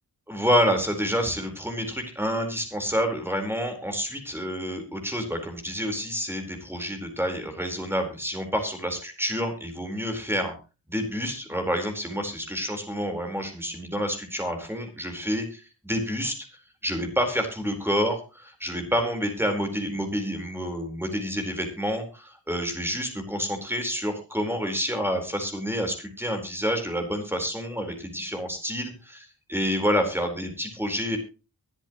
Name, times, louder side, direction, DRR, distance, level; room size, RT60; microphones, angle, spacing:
voice 1, 0.3-10.5 10.9-16.3 16.8-31.2, equal, 5° right, 5 dB, 4.3 m, -28 dB
24.0 x 8.2 x 3.1 m, 0.31 s
wide cardioid pair, 110°, 41 cm